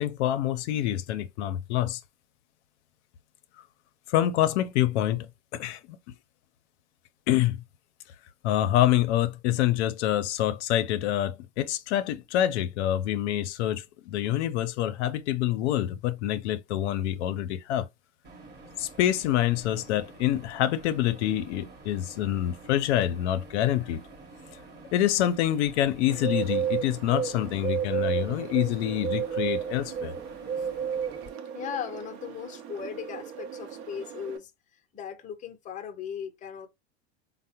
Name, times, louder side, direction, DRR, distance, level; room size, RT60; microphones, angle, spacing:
voice 1, 0.0-2.0 4.1-6.0 7.3-7.6 8.4-17.9 18.8-24.0 24.9-30.1, left 12 dB, 80° left, 0.5 m, -26 dB
sound 1, 18.2-31.3, right 2 dB, 30° right, 0.9 m, -49 dB
Bird, 26.1-34.4, right 8 dB, 70° right, 0.7 m, -32 dB
voice 2, 31.5-36.7, left 8 dB, 25° left, 0.5 m, -38 dB
3.4 x 2.0 x 2.7 m
supercardioid pair, 115°, 34 cm